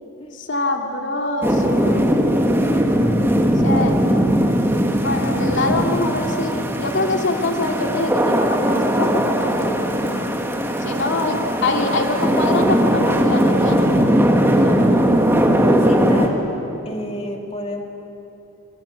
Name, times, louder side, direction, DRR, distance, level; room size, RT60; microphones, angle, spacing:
voice 1, 0.3-2.3 3.6-4.3 5.0-10.4 10.8-14.0 14.4-14.8, left 2 dB, 55° left, 3 dB, 2.7 m, -24 dB
sound 1, 1.4-16.3, equal, 10° right, 2.2 m, -19 dB
voice 2, 10.8-11.3 15.8-16.4 16.8-17.8, left 1 dB, 25° left, 2 dB, 2.8 m, -31 dB
27.0 x 26.5 x 8.3 m, 3.0 s
head